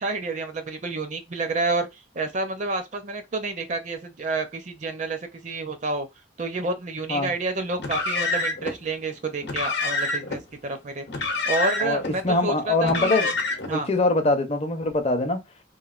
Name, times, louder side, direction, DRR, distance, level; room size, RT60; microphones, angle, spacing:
voice 1, 0.0-6.1 6.4-11.1 11.5-13.2 13.7-13.9, right 3 dB, 40° right, 0.5 m, -29 dB
Car, 7.8-8.7 9.4-10.4 11.1-12.1 12.8-13.8, left 3 dB, 70° left, 0.8 m, -27 dB
voice 2, 11.8-13.3 13.7-15.4, left 2 dB, 35° left, 0.6 m, -23 dB
3.0 x 2.4 x 2.4 m
head